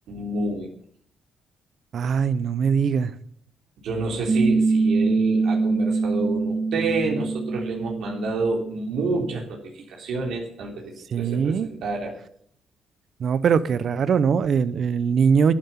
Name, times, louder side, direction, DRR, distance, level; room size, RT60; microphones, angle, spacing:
voice 1, 0.1-0.7 3.8-12.1, right 2 dB, 75° right, 3.4 m, -29 dB
voice 2, 1.9-3.1 11.1-11.7 13.2-15.5, right 6 dB, 55° right, 0.8 m, -21 dB
Piano, 4.3-9.4, right 4 dB, 25° right, 2.2 m, -24 dB
11.5 x 9.2 x 7.3 m
cardioid pair, 90°, 0 cm